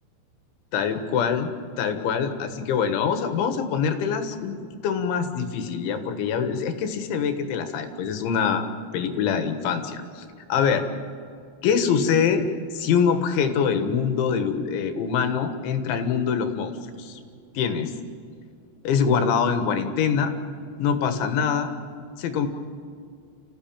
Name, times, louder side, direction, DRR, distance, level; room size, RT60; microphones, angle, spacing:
voice 1, 0.7-1.5 1.8-8.7 8.9-10.3 10.5-10.9 11.6-17.2 17.6-17.9 18.9-20.3 20.8-21.7 22.2-22.5, left 6 dB, 85° left, 7 dB, 3.9 m, -24 dB
29.5 x 15.5 x 8.9 m, 2.3 s
omnidirectional pair, 5.2 m